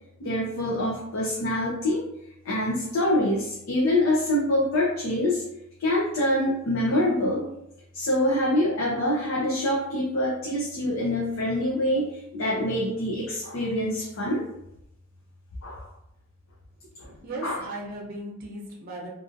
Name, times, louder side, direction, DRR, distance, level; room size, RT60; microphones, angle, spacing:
voice 1, 0.2-2.0 2.4-5.4 5.8-7.5 7.9-14.4 15.6-15.9 17.4-17.6, left 1 dB, 80° left, -5 dB, 0.6 m, -25 dB
voice 2, 17.0-19.1, right 1 dB, 45° right, -2 dB, 0.6 m, -37 dB
2.7 x 2.5 x 2.5 m, 0.81 s
head